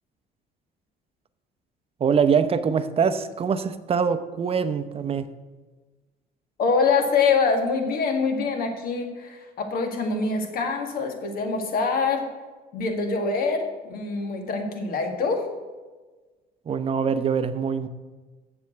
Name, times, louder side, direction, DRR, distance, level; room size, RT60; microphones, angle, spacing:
voice 1, 2.0-5.3 16.7-17.9, right 6 dB, 35° right, 11 dB, 0.7 m, -23 dB
voice 2, 6.6-12.3 12.7-15.5, left 4 dB, 60° left, 4 dB, 1.7 m, -24 dB
7.2 x 7.1 x 7.7 m, 1.3 s
cardioid pair, 110°, 17 cm